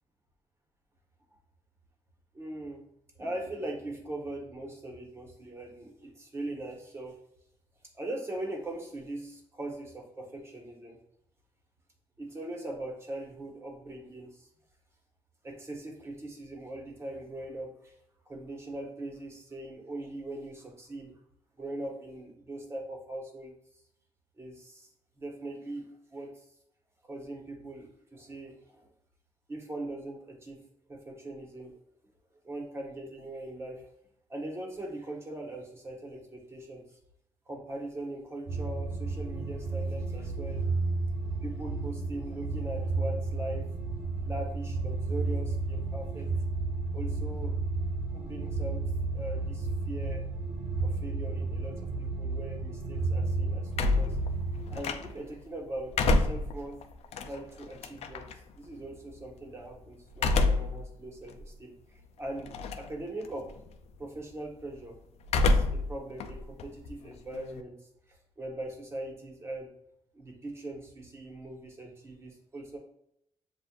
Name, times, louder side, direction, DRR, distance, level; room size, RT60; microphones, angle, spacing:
voice 1, 2.3-2.8 3.2-7.2 7.9-11.0 12.2-14.5 15.4-18.0 18.3-21.1 21.6-23.5 24.4-24.9 25.2-26.3 27.0-28.9 29.5-30.6 30.9-31.8 32.4-33.8 34.3-36.9 37.5-40.7 41.4-43.7 44.0-46.3 46.9-47.6 48.1-50.3 50.8-54.2 54.7-56.8 57.2-58.3 58.5-63.5 64.0-65.0 65.4-67.7 68.1-69.7 70.1-72.8, right 1 dB, 25° right, 0 dB, 1.2 m, -41 dB
sound 1, 38.5-54.8, right 3 dB, 55° right, 1.0 m, -32 dB
sound 2, 53.7-55.4 55.8-58.3 60.1-60.8 61.3-61.4 62.5-63.0 63.3-63.7 65.2-65.9 66.2-67.6, left 2 dB, 75° left, 0.4 m, -27 dB
7.4 x 2.5 x 2.4 m, 0.74 s
cardioid pair, 100°, 11 cm